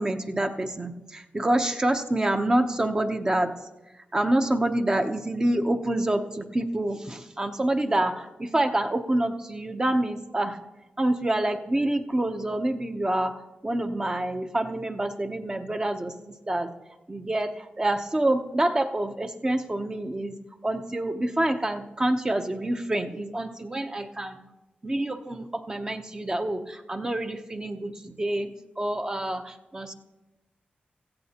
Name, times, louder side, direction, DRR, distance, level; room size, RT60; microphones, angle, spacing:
voice 1, 0.0-3.5 3.9-10.6 11.0-13.3 13.6-16.7 17.1-20.4 20.6-24.4 24.8-29.9, right 1 dB, 20° right, 6 dB, 0.8 m, -27 dB
16.5 x 15.0 x 2.9 m, 1.0 s
wide cardioid pair, 125°, 3 cm